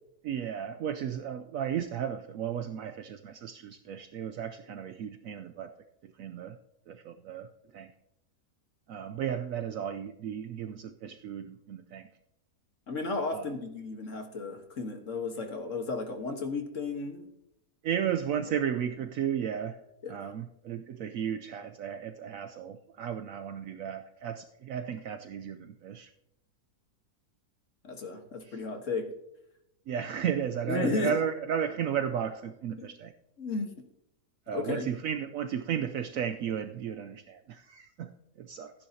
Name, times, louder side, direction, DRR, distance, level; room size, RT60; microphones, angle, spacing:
voice 1, 0.2-5.7 6.0-6.6 6.9-7.9 8.9-12.1 13.3-13.5 17.8-19.8 20.1-26.1 28.4-28.6 29.9-33.1 34.5-38.7, right 8 dB, 70° right, 7 dB, 0.9 m, -34 dB
voice 2, 12.9-17.3 20.0-20.3 27.8-29.1 30.7-31.2 32.8-32.9 33.4-33.8 34.5-34.9, left 3 dB, 55° left, 5 dB, 1.6 m, -34 dB
15.0 x 10.0 x 2.8 m, 0.81 s
omnidirectional pair, 1.6 m